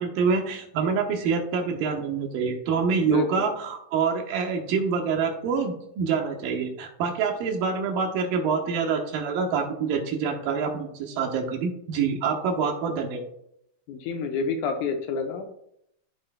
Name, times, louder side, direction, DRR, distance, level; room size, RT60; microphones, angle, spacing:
voice 1, 0.0-13.2, right 5 dB, 80° right, 2 dB, 2.6 m, -26 dB
voice 2, 3.1-3.5 13.9-15.4, left 5 dB, 80° left, 5 dB, 1.8 m, -28 dB
13.0 x 4.4 x 2.2 m, 0.75 s
omnidirectional pair, 4.0 m